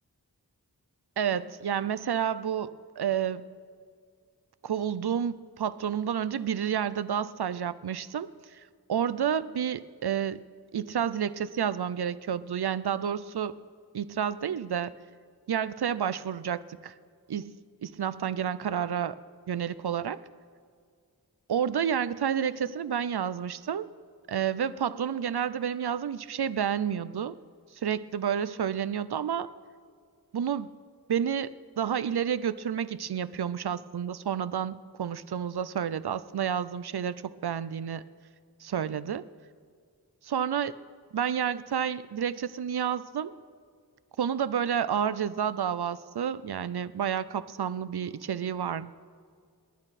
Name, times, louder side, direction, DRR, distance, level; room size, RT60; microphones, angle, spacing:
voice 1, 1.2-3.5 4.6-8.6 8.9-10.4 10.7-13.5 13.9-14.9 15.5-16.9 17.3-17.6 17.8-19.2 19.5-20.2 21.5-23.9 24.3-27.4 27.8-29.5 30.3-30.7 31.1-38.0 38.6-39.2 40.2-40.8 41.1-43.3 44.2-48.9, right 8 dB, 80° right, 16 dB, 0.5 m, -30 dB
28.5 x 11.0 x 4.2 m, 2.1 s
wide cardioid pair, 50°, 38 cm